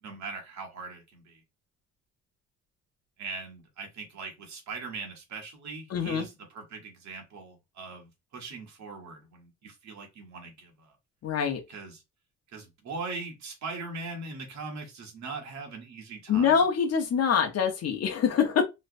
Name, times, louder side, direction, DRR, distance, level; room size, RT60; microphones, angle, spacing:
voice 1, 0.0-1.4 3.2-10.9 11.7-12.0 12.5-16.6, right 4 dB, 65° right, 1.5 m, -40 dB
voice 2, 5.9-6.3 11.2-11.6 16.3-18.6, left 7 dB, 55° left, 1.0 m, -25 dB
3.2 x 3.1 x 2.6 m
cardioid pair, 90°, 30 cm